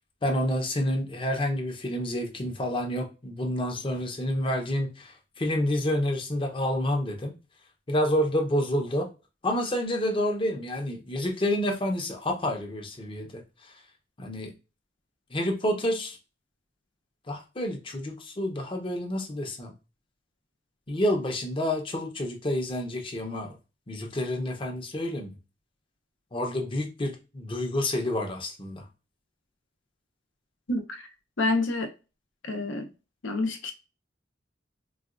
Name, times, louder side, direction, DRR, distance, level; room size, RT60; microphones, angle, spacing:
voice 1, 0.2-7.3 7.9-9.1 9.4-13.7 14.2-14.5 15.3-16.2 17.3-19.7 20.9-23.6 23.9-25.3 26.3-28.8, left 1 dB, 30° left, 0.7 m, -29 dB
voice 2, 30.7-31.1 31.4-31.9 32.4-32.9 33.2-33.7, left 2 dB, 75° left, 0.7 m, -28 dB
4.0 x 2.2 x 2.4 m
head